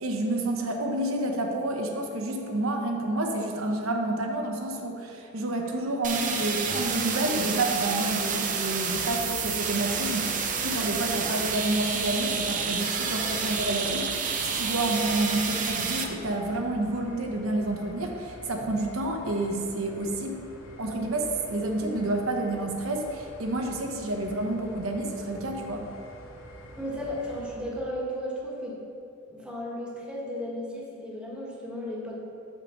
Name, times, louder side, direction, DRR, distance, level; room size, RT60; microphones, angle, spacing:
voice 1, 0.0-20.4 20.8-25.8, right 1 dB, 85° right, 2 dB, 0.9 m, -29 dB
sound 1, 6.0-16.0, right 6 dB, 40° right, 0.6 m, -29 dB
sound 2, 8.9-27.6, left 1 dB, 80° left, 1.1 m, -46 dB
voice 2, 26.8-28.8 29.3-32.2, equal, 5° right, -4 dB, 1.2 m, -34 dB
5.7 x 4.7 x 6.5 m, 2.7 s
head